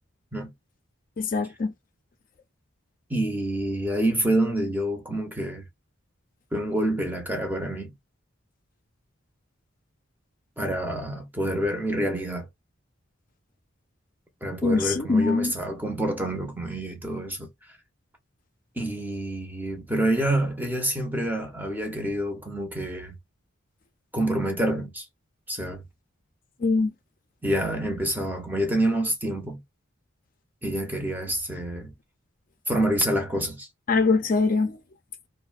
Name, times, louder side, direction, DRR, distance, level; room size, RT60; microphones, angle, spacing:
voice 1, 1.2-1.7 14.6-15.5 26.6-26.9 33.9-34.8, left 4 dB, 40° left, 0.4 m, -23 dB
voice 2, 3.1-5.6 6.5-7.9 10.6-12.5 14.4-17.8 18.8-23.2 24.1-25.1 25.5-25.8 27.4-29.6 30.6-31.9 32.7-33.7, right 1 dB, 10° right, 0.6 m, -27 dB
2.6 x 2.1 x 2.3 m
head